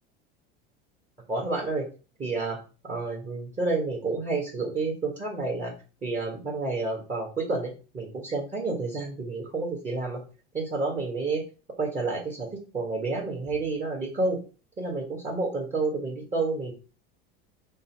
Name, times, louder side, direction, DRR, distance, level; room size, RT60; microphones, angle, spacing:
voice 1, 1.3-1.9 2.2-5.7 6.0-10.2 10.5-11.4 11.8-14.4 14.8-16.7, right 3 dB, 25° right, -2 dB, 1.4 m, -30 dB
5.3 x 2.1 x 4.5 m, 0.34 s
hypercardioid pair, 95°, 29 cm